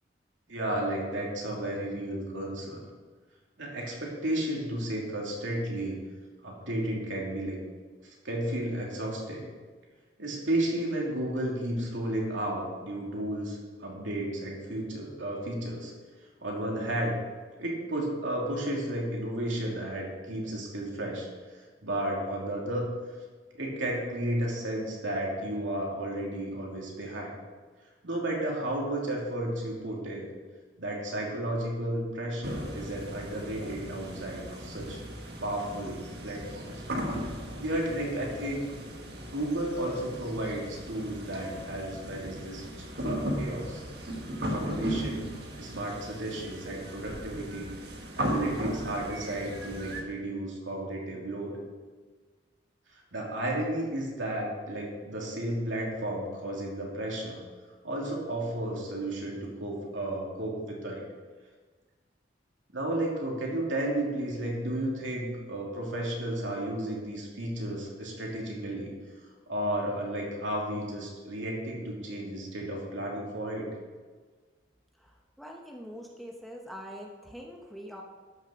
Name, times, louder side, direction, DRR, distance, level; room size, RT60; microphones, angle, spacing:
voice 1, 0.5-2.8 3.6-6.0 6.4-7.6 8.0-9.5 10.2-15.9 16.4-17.2 17.6-21.3 21.8-22.9 23.5-27.3 28.0-30.3 30.8-35.0 35.4-36.8 37.2-37.3 37.6-38.7 39.3-43.8 44.5-45.3 45.6-47.7 48.1-51.6 52.9-57.4 57.8-61.0 62.7-68.9 69.5-73.7, right 1 dB, 80° right, -2 dB, 2.9 m, -33 dB
sound 1, 32.4-50.0, equal, 55° right, 1.5 m, -37 dB
voice 2, 75.0-78.0, equal, ahead, 0 dB, 0.9 m, -44 dB
13.0 x 6.5 x 5.8 m, 1.4 s
head